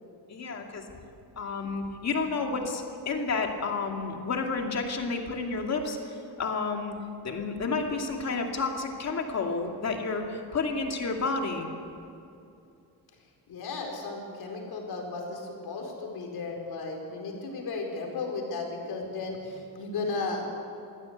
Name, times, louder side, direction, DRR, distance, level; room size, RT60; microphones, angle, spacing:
voice 1, 0.3-0.8 1.4-6.0 6.4-6.9 7.2-11.7, left 4 dB, 40° left, 2 dB, 2.5 m, -30 dB
voice 2, 13.5-20.5, left 3 dB, 65° left, 1 dB, 4.7 m, -35 dB
23.0 x 16.0 x 8.2 m, 2.6 s
wide cardioid pair, 165°, 39 cm